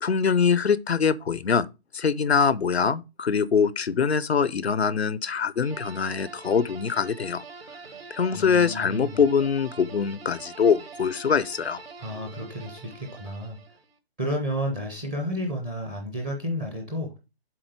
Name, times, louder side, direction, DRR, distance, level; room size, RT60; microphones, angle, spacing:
voice 1, 0.0-1.7 1.9-7.4 8.1-11.8, left 6 dB, 85° left, 0.7 m, -23 dB
sound 1, 5.6-14.0, right 4 dB, 70° right, 1.6 m, -44 dB
voice 2, 8.3-9.2 12.0-13.6 14.2-17.2, equal, 5° right, 0.4 m, -31 dB
7.8 x 3.8 x 6.7 m
figure-of-eight pair, 145°, 31 cm